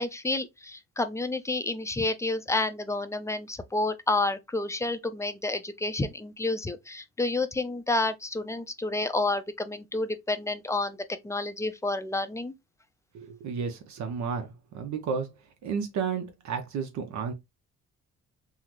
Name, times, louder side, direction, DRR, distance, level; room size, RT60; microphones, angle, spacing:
voice 1, 0.0-11.0 11.2-12.5, left 2 dB, 10° left, 0.4 m, -29 dB
voice 2, 13.1-15.3 15.6-17.3, right 6 dB, 70° right, 0.7 m, -32 dB
3.7 x 2.1 x 2.9 m
cardioid pair, 90°, 30 cm